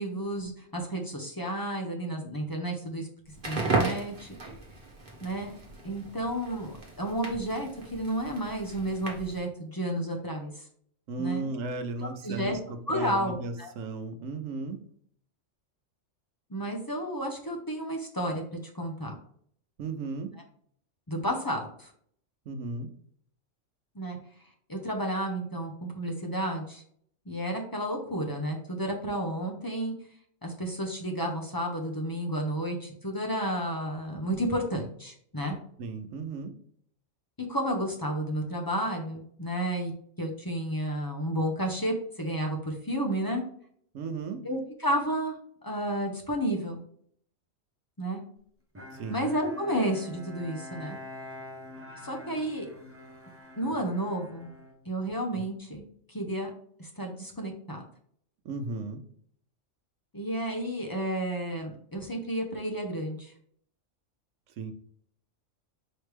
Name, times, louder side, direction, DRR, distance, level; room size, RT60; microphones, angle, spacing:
voice 1, 0.0-3.1 3.5-4.3 5.2-5.5 5.8-10.5 11.2-11.5 12.2-12.6 12.9-13.7 16.5-18.4 18.8-19.1 21.1-21.9 23.9-24.2 24.7-26.8 27.3-29.9 30.4-35.6 37.5-39.9 40.2-43.4 44.4-45.4 45.6-46.8 48.0-48.2 49.1-51.0 52.0-52.7 53.6-54.5 54.9-55.8 56.1-56.5 56.8-57.8 60.1-63.3, right 1 dB, 20° left, 1 dB, 0.7 m, -31 dB
Crackle, 3.3-9.5, right 3 dB, 40° right, 1.3 m, -35 dB
voice 2, 11.1-14.8 19.8-20.3 22.5-22.9 35.8-36.5 43.9-44.4 48.9-49.3 58.4-59.0 64.6-64.7, right 3 dB, 90° right, 7 dB, 1.1 m, -35 dB
Bowed string instrument, 48.7-55.4, left 1 dB, 15° right, 0.5 m, -46 dB
5.0 x 3.3 x 3.2 m, 0.62 s
omnidirectional pair, 1.3 m